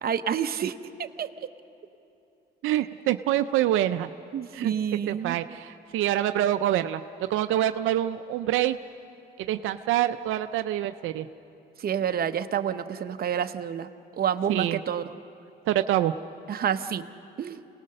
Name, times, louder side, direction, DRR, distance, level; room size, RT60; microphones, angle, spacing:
voice 1, 0.0-1.3 4.3-5.4 11.8-13.9 14.2-15.0 16.5-17.0 17.4-17.6, right 8 dB, 50° right, 8 dB, 0.8 m, -28 dB
voice 2, 2.6-4.1 4.5-4.7 5.1-7.0 7.3-8.8 9.4-11.3 14.5-14.8 15.7-16.1, right 12 dB, 90° right, 10 dB, 0.5 m, -26 dB
27.5 x 18.5 x 6.6 m, 2.8 s
cardioid pair, 90°, 20 cm